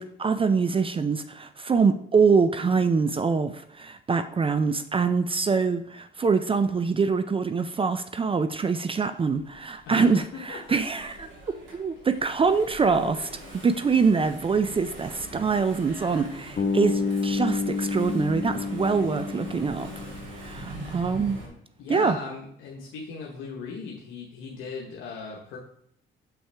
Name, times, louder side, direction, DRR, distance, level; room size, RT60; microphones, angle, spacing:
voice 1, 0.0-11.3 11.7-13.3 13.6-19.9 20.4-21.4 21.9-22.2, right 5 dB, 25° right, 0.4 m, -24 dB
Engine / Mechanisms, 9.3-21.5, right 1 dB, 75° right, 2.6 m, -43 dB
voice 2, 9.9-10.8 21.8-25.6, left 4 dB, 90° left, 1.1 m, -38 dB
Bass guitar, 16.6-20.7, left 4 dB, 50° left, 1.3 m, -29 dB
6.9 x 5.7 x 3.4 m
cardioid pair, 90°, 20 cm